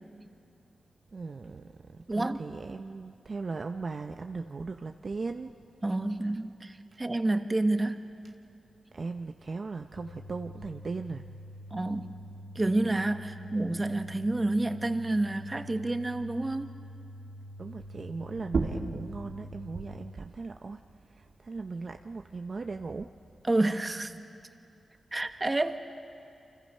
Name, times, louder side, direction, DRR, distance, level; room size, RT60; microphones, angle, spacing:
voice 1, 1.1-5.5 8.9-11.2 17.6-20.8 21.1-23.1, right 4 dB, 50° right, 6 dB, 0.6 m, -38 dB
voice 2, 2.1-2.4 5.8-8.1 11.7-12.1 12.5-16.7 23.4-24.1 25.1-25.8, right 2 dB, 25° right, 8 dB, 1.2 m, -29 dB
sound 1, 10.0-20.0, equal, 60° left, 1.6 m, -46 dB
sound 2, 18.4-23.6, right 4 dB, 70° right, 1.6 m, -38 dB
29.5 x 25.0 x 5.5 m, 2.5 s
cardioid pair, 65°, 0 cm